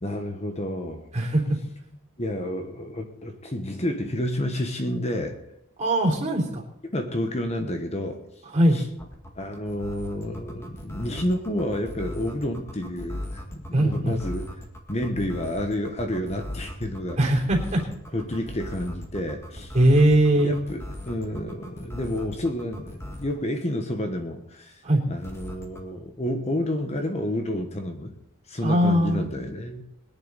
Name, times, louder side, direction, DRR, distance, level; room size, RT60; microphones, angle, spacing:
voice 1, 0.0-1.1 2.2-5.4 6.9-8.2 8.7-8.8 9.3-14.5 14.9-17.2 18.1-19.8 20.3-28.1 28.5-29.8, left 1 dB, 30° left, 5 dB, 1.2 m, -30 dB
voice 2, 1.1-1.4 5.8-6.6 8.5-8.8 13.7-14.2 17.2-17.8 19.7-20.5 24.8-25.0 28.6-29.3, right 1 dB, 30° right, -1 dB, 3.3 m, -20 dB
sound 1, 9.0-23.4 25.2-25.8, left 1 dB, 10° left, 1.9 m, -38 dB
21.5 x 10.5 x 4.1 m, 0.79 s
head